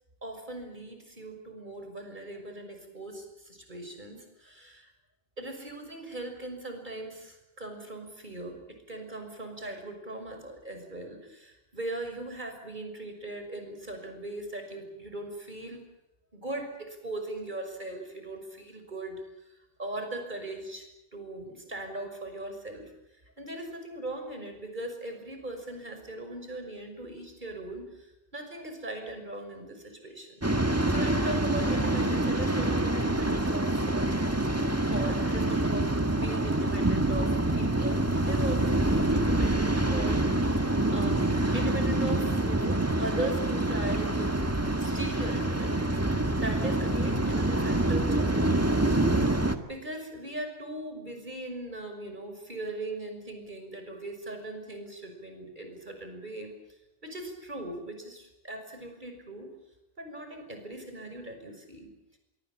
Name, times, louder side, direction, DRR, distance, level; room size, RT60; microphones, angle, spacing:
voice 1, 0.2-4.9 5.4-15.8 16.3-22.9 23.4-34.2 34.8-44.5 44.8-49.0 49.3-56.5 57.0-59.5 60.0-61.9, right 1 dB, 45° right, 5 dB, 6.1 m, -39 dB
Waves surf, 30.4-49.6, right 1 dB, 15° right, 1.8 m, -26 dB
25.5 x 24.0 x 7.5 m, 0.92 s
omnidirectional pair, 1.1 m